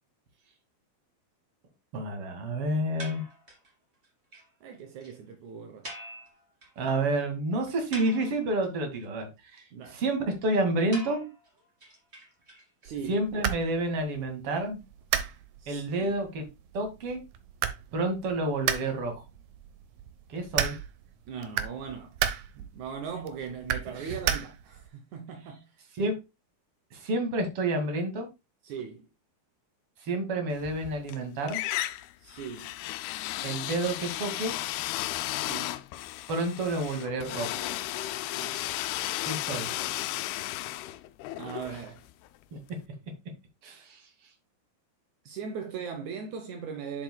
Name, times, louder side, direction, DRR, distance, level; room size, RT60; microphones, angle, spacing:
voice 1, 1.9-3.2 6.8-9.3 9.5-11.3 13.1-14.8 15.7-16.4 16.7-17.2 17.9-19.2 20.3-20.7 24.0-24.2 26.0-26.1 26.9-28.3 30.0-31.6 33.4-34.5 36.3-37.6 39.2-39.7 42.5-42.6 43.6-44.0, right 2 dB, 45° right, 2.4 m, -29 dB
sound 1, 3.0-3.7 4.0-4.1 4.3-4.4 4.7-4.8 5.0-5.1 5.8-6.8 7.2-7.3 7.7-8.7 10.9-12.9, right 1 dB, 20° right, 2.1 m, -44 dB
voice 2, 4.6-5.9 9.7-10.0 12.8-13.2 15.6-16.1 21.3-22.2 22.6-25.8 28.6-29.1 32.2-32.7 35.2-35.8 38.1-38.6 41.4-42.0 45.3-47.0, right 6 dB, 75° right, 1.8 m, -39 dB
sound 2, 12.9-24.9, right 10 dB, 90° right, 1.6 m, -35 dB
sound 3, 30.6-31.2 31.5-42.4, left 15 dB, 85° left, 2.6 m, -34 dB
7.7 x 7.3 x 2.2 m
omnidirectional pair, 4.5 m